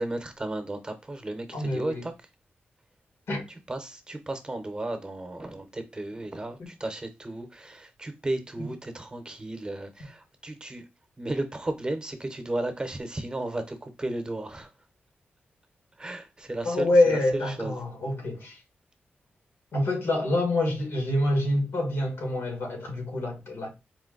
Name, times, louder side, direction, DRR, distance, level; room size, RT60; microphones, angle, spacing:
voice 1, 0.0-2.1 3.7-10.8 11.2-14.7 16.0-17.7, right 2 dB, 20° right, 0.8 m, -34 dB
voice 2, 1.5-2.0 3.3-3.4 6.6-6.7 8.6-8.7 16.6-18.6 19.7-23.7, left 1 dB, 90° left, 1.7 m, -26 dB
4.3 x 2.2 x 3.8 m
wide cardioid pair, 105°, 4 cm